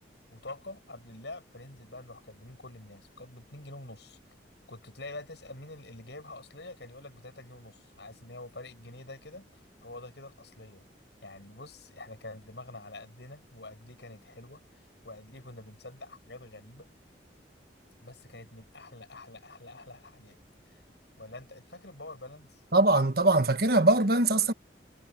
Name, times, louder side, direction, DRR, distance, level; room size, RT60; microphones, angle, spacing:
voice 1, 0.3-4.2 4.7-10.8 11.2-16.9 18.0-20.4 20.7-20.8 21.2-22.6, left 2 dB, 70° left, 6.7 m, -46 dB
voice 2, 22.7-24.5, right 2 dB, 55° right, 1.6 m, -22 dB
head